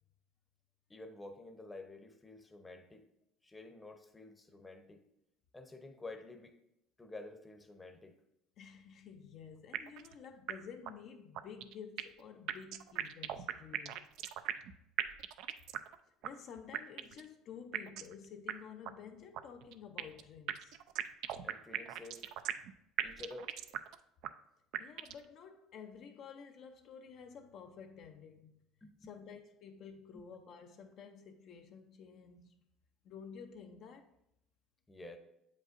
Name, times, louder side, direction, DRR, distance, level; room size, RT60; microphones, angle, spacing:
voice 1, 0.9-3.0 3.4-5.0 5.5-6.6 7.0-8.1 21.4-22.2 23.0-23.5 28.8-29.1 30.1-30.2 34.9-35.2, left 2 dB, 15° left, 0.7 m, -50 dB
voice 2, 8.6-14.1 16.2-20.8 24.8-28.6 29.1-32.6 33.0-34.1, left 7 dB, 55° left, 0.5 m, -51 dB
sound 1, 9.7-10.2 10.5-10.6 10.9-11.0 11.4-12.2 12.5-14.7 15.0-16.0 16.2-16.3 16.7-17.3 17.7-18.2 18.5-18.6 18.9-19.0 19.3-20.2 20.5-22.7 23.0-24.0 24.2-24.3 24.7-25.3, right 12 dB, 70° right, 0.3 m, -38 dB
7.5 x 5.2 x 2.5 m
supercardioid pair, 95°, 0 cm